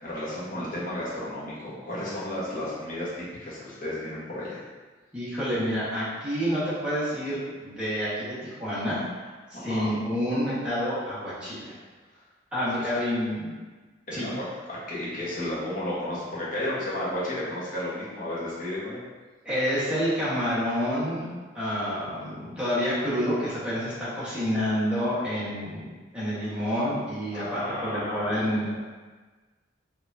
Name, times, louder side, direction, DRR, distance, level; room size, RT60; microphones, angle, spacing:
voice 1, 0.0-4.6 9.5-9.9 14.1-19.0 27.3-28.7, left 1 dB, 50° left, -7 dB, 1.3 m, -33 dB
voice 2, 5.1-9.0 9.5-11.7 12.5-13.6 14.1-14.3 19.4-25.8 26.1-28.7, equal, 5° right, -11 dB, 1.5 m, -28 dB
4.9 x 2.9 x 2.7 m, 1.3 s
head